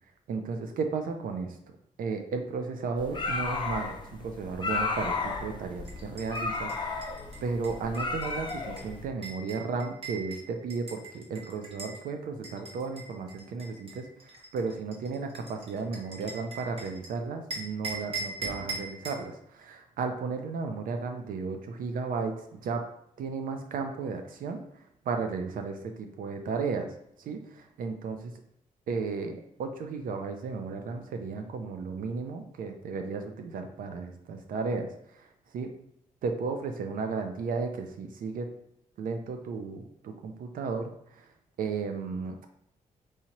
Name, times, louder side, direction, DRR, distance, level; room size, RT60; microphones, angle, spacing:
voice 1, 0.3-1.6 2.0-7.0 7.4-22.8 23.2-28.3 28.9-35.7 36.2-38.5 39.0-41.3 41.6-42.3, right 4 dB, 80° right, 6 dB, 0.5 m, -34 dB
sound 1, 3.0-9.1, left 3 dB, 35° left, 0.7 m, -34 dB
sound 2, 5.9-12.0 12.4-17.1 17.5-19.2, right 3 dB, 40° right, 1.2 m, -41 dB
4.7 x 2.8 x 2.9 m, 0.75 s
cardioid pair, 105°, 14 cm